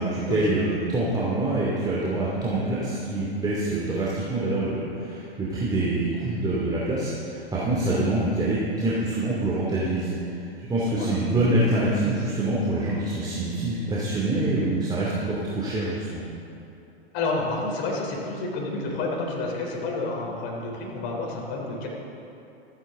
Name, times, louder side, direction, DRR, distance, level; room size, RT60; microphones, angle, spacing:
voice 1, 0.0-16.2, right 2 dB, 10° right, -7 dB, 2.5 m, -26 dB
voice 2, 17.1-21.9, left 3 dB, 35° left, -1 dB, 3.5 m, -29 dB
26.5 x 10.0 x 3.7 m, 2.9 s
figure-of-eight pair, 95°, 31 cm